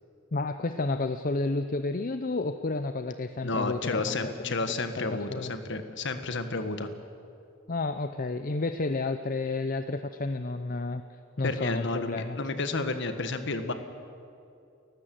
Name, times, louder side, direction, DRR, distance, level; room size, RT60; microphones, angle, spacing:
voice 1, 0.3-4.6 5.0-5.5 7.7-11.0 11.4-12.4, left 3 dB, 40° left, 9 dB, 0.6 m, -31 dB
voice 2, 3.4-6.9 11.4-13.7, left 3 dB, 55° left, 9 dB, 1.6 m, -31 dB
30.0 x 14.5 x 7.8 m, 2.6 s
head